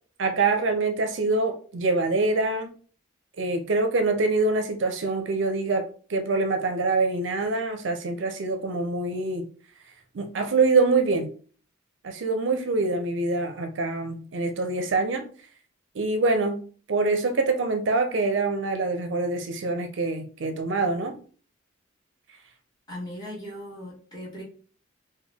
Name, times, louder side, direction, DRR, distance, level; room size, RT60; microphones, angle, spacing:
voice 1, 0.2-2.7 3.4-9.5 10.1-11.3 12.0-15.3 15.9-21.2, right 3 dB, 65° right, 0.5 m, -25 dB
voice 2, 22.9-24.4, equal, 20° left, 1.4 m, -38 dB
3.6 x 2.2 x 3.4 m
head